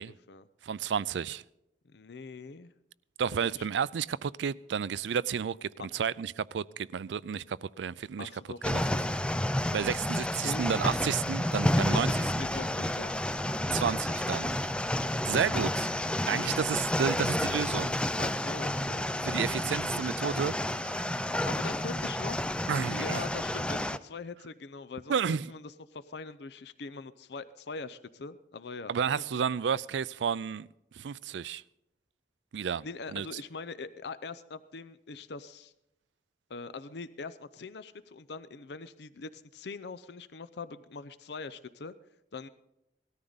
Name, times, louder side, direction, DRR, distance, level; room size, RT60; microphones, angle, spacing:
voice 1, 0.0-0.4 1.9-2.7 3.5-3.7 8.2-9.2 10.4-10.8 11.8-13.1 15.4-15.5 16.3-16.6 18.2-19.1 19.4-19.7 21.5-29.0 32.8-35.7 36.5-41.9 42.3-42.5, left 4 dB, 70° left, 0.6 m, -42 dB
voice 2, 0.6-1.4 3.2-8.3 8.6-8.8 9.7-12.5 13.7-14.5 15.2-15.9 16.3-18.0 19.2-21.3 22.7-23.3 25.1-25.5 28.9-30.7 30.9-31.6 32.5-32.9 33.1-33.3, right 7 dB, 85° right, 0.4 m, -31 dB
sound 1, 8.6-24.0, left 1 dB, 5° left, 0.4 m, -30 dB
18.5 x 13.5 x 4.0 m
head